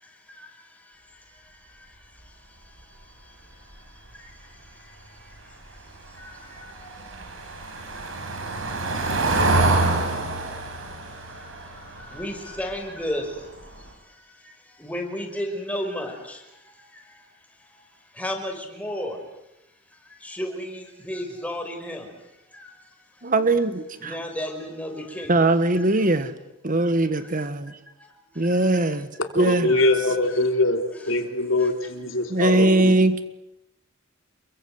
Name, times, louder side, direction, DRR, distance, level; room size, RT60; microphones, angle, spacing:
Car passing by / Engine, 6.1-13.1 13.4-13.6 13.9-14.0, right 2 dB, 85° right, 5.4 m, -26 dB
voice 1, 12.2-13.2 14.9-16.1 18.2-18.5 18.8-19.1 20.4-20.6 21.1-22.0 24.1-25.3 29.7-30.0, left 1 dB, 5° left, 5.6 m, -31 dB
voice 2, 23.2-24.2 25.3-26.3 26.6-27.8 28.3-29.1 29.3-29.8 32.3-33.2, right 2 dB, 45° right, 1.5 m, -21 dB
voice 3, 29.4-32.9, left 2 dB, 75° left, 3.3 m, -23 dB
28.5 x 23.0 x 8.1 m
head